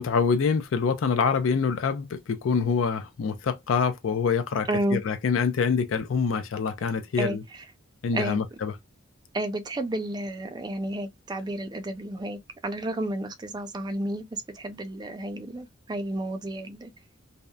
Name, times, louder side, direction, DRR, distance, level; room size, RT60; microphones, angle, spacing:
voice 1, 0.0-7.4 8.0-8.7, left 5 dB, 90° left, 0.4 m, -25 dB
voice 2, 4.7-5.0 7.2-7.4 8.1-8.4 9.3-16.9, right 1 dB, 20° right, 0.4 m, -31 dB
2.7 x 2.1 x 2.2 m
head